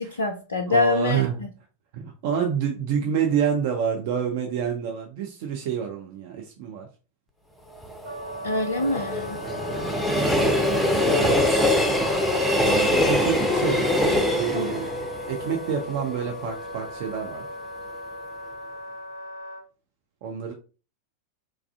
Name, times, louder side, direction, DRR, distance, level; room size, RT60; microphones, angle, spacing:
voice 1, 0.0-1.5 8.4-9.4 14.5-14.7, left 3 dB, 70° left, 4 dB, 0.3 m, -25 dB
voice 2, 0.7-1.4 1.9-6.9 9.4-9.9 10.3-11.5 12.6-13.9 14.3-17.4 20.2-20.5, right 7 dB, 50° right, 2 dB, 0.4 m, -28 dB
Train, 7.7-16.8 17.2-17.3, left 1 dB, 5° left, 0.5 m, -24 dB
Wind instrument woodwind instrument, 8.0-19.6, equal, 90° right, 1.1 m, -38 dB
3.1 x 2.4 x 2.4 m, 0.35 s
figure-of-eight pair, 90°, 0 cm